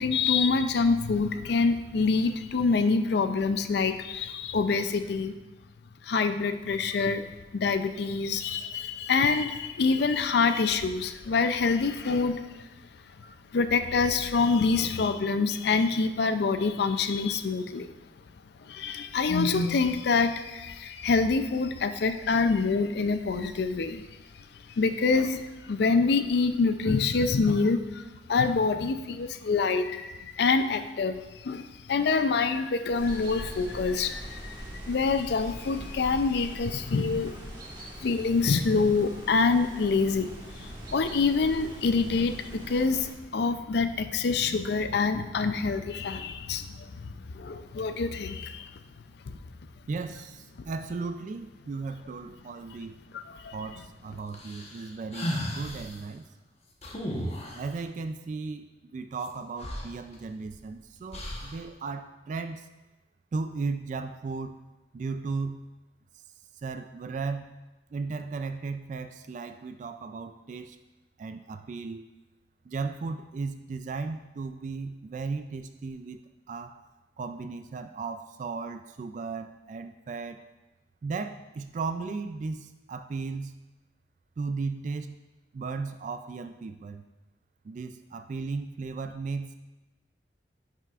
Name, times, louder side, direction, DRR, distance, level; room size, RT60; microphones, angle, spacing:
voice 1, 0.0-5.4 6.0-7.3 7.5-12.6 13.2-17.9 18.6-24.1 24.7-28.0 28.3-37.4 38.0-48.8 49.3-49.4 50.6-50.7 53.1-53.5, left 4 dB, 65° left, 10 dB, 0.4 m, -26 dB
sound 1, 32.9-43.1, right 1 dB, 25° right, 1.5 m, -42 dB
voice 2, 49.9-53.0 53.5-56.3 57.5-62.7 63.3-64.6 64.9-65.6 66.1-66.2 66.6-67.6 67.9-70.8 71.2-72.1 72.6-76.2 76.5-76.8 77.2-80.4 81.0-83.5 84.4-85.2 85.5-87.0 87.6-89.5, right 4 dB, 45° right, 9 dB, 0.3 m, -35 dB
sound 2, 54.3-56.0 56.8-57.7 59.2-59.3 59.6-60.6 61.1-61.6, equal, 40° left, 1.0 m, -35 dB
10.5 x 5.6 x 2.4 m, 1.1 s
head